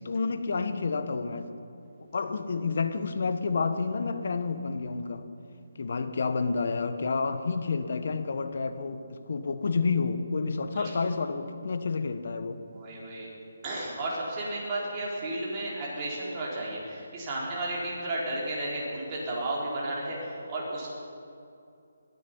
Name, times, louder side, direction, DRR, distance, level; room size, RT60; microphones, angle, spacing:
voice 1, 0.0-1.5 2.1-5.3 5.7-12.6, left 4 dB, 60° left, 9 dB, 1.1 m, -29 dB
voice 2, 12.7-13.3 13.6-20.9, right 1 dB, 25° right, -5 dB, 3.9 m, -33 dB
22.0 x 9.6 x 5.4 m, 2.6 s
hypercardioid pair, 160°, 0 cm